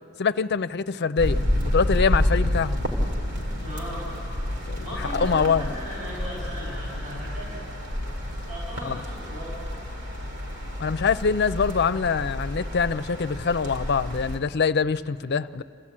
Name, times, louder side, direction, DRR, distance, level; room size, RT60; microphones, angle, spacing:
voice 1, 0.2-2.9 4.7-4.8 5.2-5.6 8.8-9.0 10.8-15.6, left 5 dB, 55° left, 13 dB, 0.5 m, -24 dB
sound 1, 1.2-14.4, left 1 dB, 60° right, 2.4 m, -29 dB
voice 2, 3.6-4.1 4.8-7.6 8.5-9.5, equal, 40° right, -8 dB, 6.2 m, -36 dB
27.5 x 14.5 x 8.6 m, 2.5 s
head